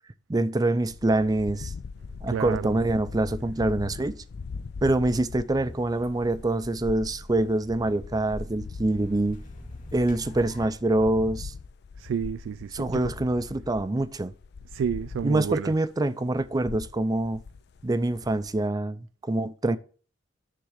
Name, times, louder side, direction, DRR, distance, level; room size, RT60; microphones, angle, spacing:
voice 1, 0.3-1.7 2.2-4.2 4.8-9.4 9.9-11.5 12.7-14.3 15.2-17.4 17.8-19.8, right 2 dB, 20° right, 0.4 m, -25 dB
sound 1, 0.8-15.9 16.2-18.7, left 5 dB, 60° left, 0.4 m, -41 dB
voice 2, 2.3-2.8 12.0-13.1 14.6-15.9, right 7 dB, 90° right, 0.3 m, -31 dB
sound 2, 5.5-10.7, equal, 45° left, 2.3 m, -43 dB
10.0 x 3.7 x 6.5 m
head